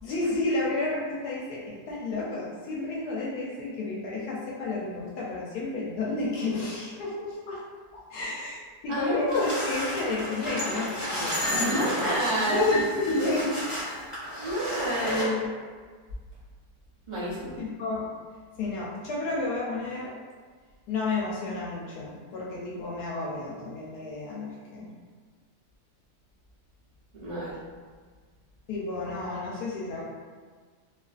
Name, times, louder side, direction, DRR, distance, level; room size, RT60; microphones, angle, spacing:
voice 1, 0.0-7.6 7.9-12.1 12.5-13.6 15.0-15.5 17.6-18.1 18.6-20.1 20.9-24.9 28.7-30.0, left 3 dB, 70° left, -5 dB, 1.0 m, -31 dB
voice 2, 8.9-9.5 11.5-12.7 14.4-15.3 17.1-17.6 27.2-27.7, right 1 dB, 75° right, -10 dB, 0.4 m, -29 dB
sound 1, 9.3-15.2, left 1 dB, 30° left, 1.1 m, -32 dB
2.7 x 2.4 x 2.3 m, 1.6 s
omnidirectional pair, 1.9 m